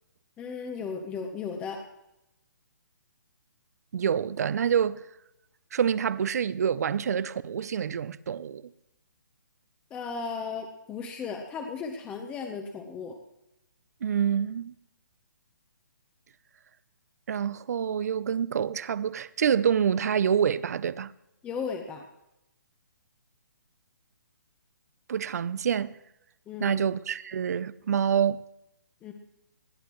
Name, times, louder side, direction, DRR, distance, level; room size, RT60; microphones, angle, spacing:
voice 1, 0.4-1.8 9.9-13.1 21.4-22.0 26.5-26.8 29.0-29.1, left 5 dB, 10° left, 0.9 m, -35 dB
voice 2, 3.9-5.1 5.7-8.6 14.0-14.7 17.3-21.1 25.1-26.0 26.6-28.4, right 8 dB, 55° right, 0.6 m, -27 dB
19.0 x 12.5 x 3.1 m
hypercardioid pair, 160°, 10 cm